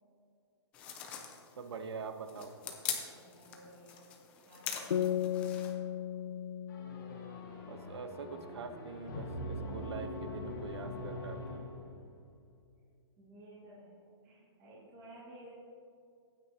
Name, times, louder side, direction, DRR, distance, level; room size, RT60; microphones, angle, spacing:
sound 1, 0.7-5.7, left 8 dB, 10° left, 0.3 m, -43 dB
voice 1, 1.6-2.6 7.7-11.7, right 5 dB, 70° right, 8 dB, 0.8 m, -44 dB
voice 2, 3.1-4.1 4.4-5.3 13.2-15.5, right 1 dB, 20° right, -7 dB, 1.6 m, -55 dB
sound 2, 4.9-8.4, left 10 dB, 65° left, 0.5 m, -36 dB
sound 3, 6.7-12.3, left 1 dB, 45° left, 1.8 m, -43 dB
15.0 x 9.0 x 2.8 m, 2.5 s
hypercardioid pair, 180°, 15 cm